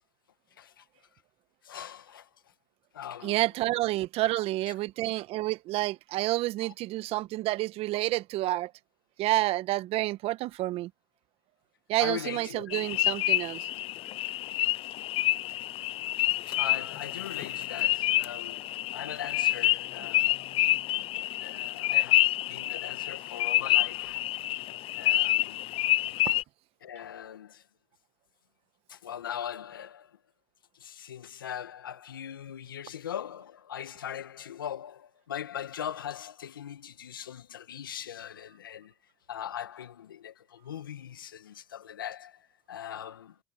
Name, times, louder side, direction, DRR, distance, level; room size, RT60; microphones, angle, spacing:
voice 1, 1.6-2.3 2.9-3.4 4.4-4.5 6.6-6.7 7.9-8.1 12.0-12.7 16.5-20.3 21.4-24.3 25.0-25.6 26.8-27.6 28.9-30.2 30.7-38.9 39.3-43.4, left 10 dB, 90° left, 1.8 m, -40 dB
voice 2, 3.2-8.7 9.2-10.9 11.9-13.7, right 17 dB, 65° right, 1.3 m, -29 dB
sound 1, 12.7-26.4, left 16 dB, 60° left, 0.7 m, -28 dB
hypercardioid pair, 60°, 11 cm